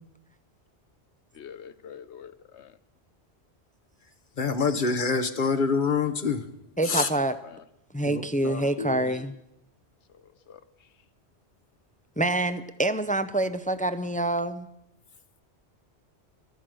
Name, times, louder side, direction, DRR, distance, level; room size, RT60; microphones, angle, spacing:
voice 1, 1.3-2.8 7.4-7.6 10.5-10.6, left 8 dB, 80° left, 13 dB, 1.1 m, -45 dB
voice 2, 4.4-6.4 6.9-7.1 8.1-9.1, left 5 dB, 50° left, 9 dB, 1.1 m, -26 dB
voice 3, 6.8-7.4 7.9-9.3 12.2-14.7, right 2 dB, 10° left, 11 dB, 0.4 m, -26 dB
13.0 x 13.0 x 7.7 m, 0.84 s
omnidirectional pair, 1.1 m